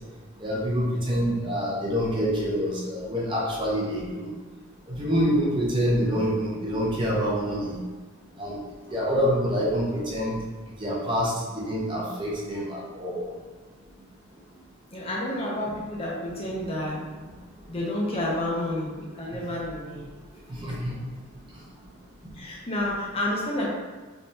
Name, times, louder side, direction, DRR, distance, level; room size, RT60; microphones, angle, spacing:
voice 1, 0.4-4.3 4.9-7.8 8.4-8.6 8.9-10.4 10.8-13.3 20.6-21.0, equal, 25° right, -5 dB, 0.6 m, -26 dB
voice 2, 14.9-17.0 17.7-20.0 22.3-23.7, left 1 dB, 30° left, -4 dB, 0.6 m, -30 dB
3.5 x 3.2 x 2.7 m, 1.4 s
head